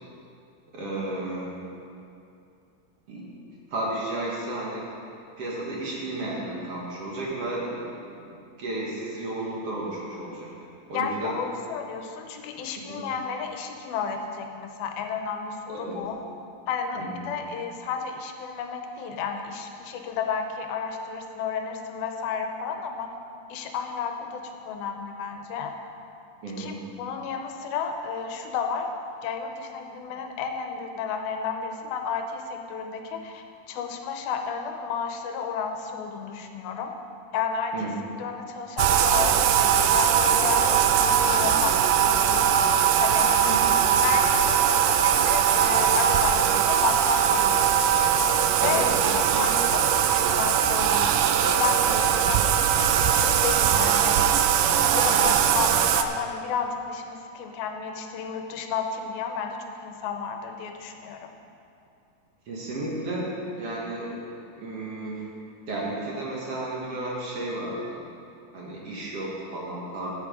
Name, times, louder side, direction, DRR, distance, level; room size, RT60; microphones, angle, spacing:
voice 1, 0.7-1.5 3.1-3.2 3.7-4.9 5.4-10.5 10.9-11.4 12.9-13.0 15.8-16.0 16.9-17.3 26.4-26.8 37.7-37.9 43.4-43.6 48.6-49.5 51.9-52.4 55.1-55.3 62.5-65.3 65.7-68.0 68.5-70.1, right 2 dB, 50° right, -4 dB, 2.1 m, -33 dB
voice 2, 10.9-16.2 16.7-23.1 23.5-25.8 26.6-28.9 29.2-36.9 37.3-37.8 38.2-42.5 43.0-43.4 44.0-48.0 48.6-54.2 54.8-61.3, left 6 dB, 85° left, 5 dB, 2.7 m, -32 dB
Bathtub (filling or washing), 38.8-56.0, right 9 dB, 85° right, 2.4 m, -21 dB
12.0 x 8.4 x 5.2 m, 2.6 s
omnidirectional pair, 4.2 m